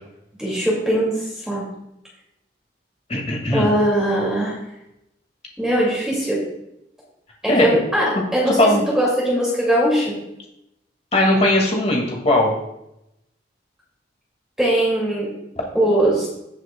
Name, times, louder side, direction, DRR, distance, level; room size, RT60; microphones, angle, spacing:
voice 1, 0.4-1.6 3.5-4.6 5.6-6.4 7.4-8.7 8.9-10.2 14.6-15.3 15.7-16.3, right 1 dB, 5° right, -5 dB, 2.3 m, -20 dB
voice 2, 3.1-3.7 7.5-7.8 8.6-8.8 11.1-12.5, left 1 dB, 35° left, 0 dB, 2.1 m, -18 dB
17.0 x 6.4 x 2.3 m, 0.84 s
head